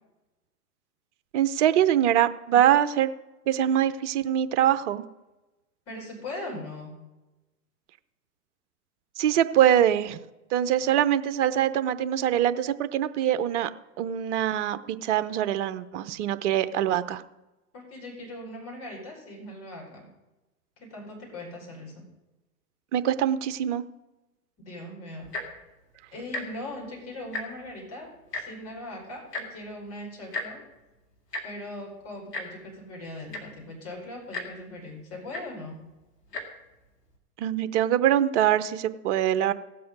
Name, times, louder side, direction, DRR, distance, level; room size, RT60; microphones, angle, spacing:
voice 1, 1.3-3.1 3.5-5.0 9.2-10.2 10.5-13.7 14.0-17.2 22.9-23.8 37.4-39.5, right 11 dB, 50° right, 12 dB, 0.8 m, -23 dB
voice 2, 5.9-6.9 17.7-20.1 20.8-22.0 24.6-25.5 26.1-30.6 31.4-35.8, left 1 dB, 30° left, -2 dB, 4.7 m, -40 dB
Tick-tock, 25.2-25.6 26.3-26.4 26.8-26.9 27.2-27.7 28.3-28.4 29.3-29.5 30.3-30.5 31.3-31.4 32.3-32.5 33.0-33.1 33.3-33.6 34.3-34.5 35.3-35.4 36.2-36.4 37.1-37.2, left 2 dB, 90° left, 2.3 m, -33 dB
16.5 x 7.7 x 5.3 m, 1.0 s
hypercardioid pair, 115°, 47 cm